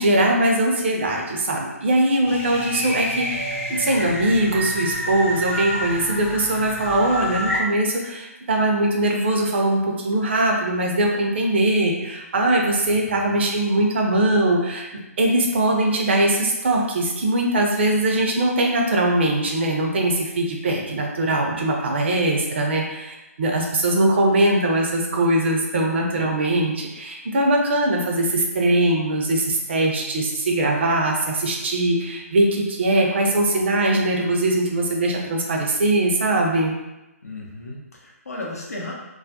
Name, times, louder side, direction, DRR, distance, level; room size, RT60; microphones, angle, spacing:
voice 1, 0.0-14.9 15.2-36.7, right 1 dB, 45° right, 0 dB, 0.5 m, -21 dB
sound 1, 2.2-7.6, equal, 15° left, 0.4 m, -28 dB
voice 2, 12.9-13.4 37.2-38.9, left 2 dB, 75° left, -3 dB, 0.6 m, -35 dB
2.3 x 2.0 x 2.7 m, 0.99 s
figure-of-eight pair, 135°, 8 cm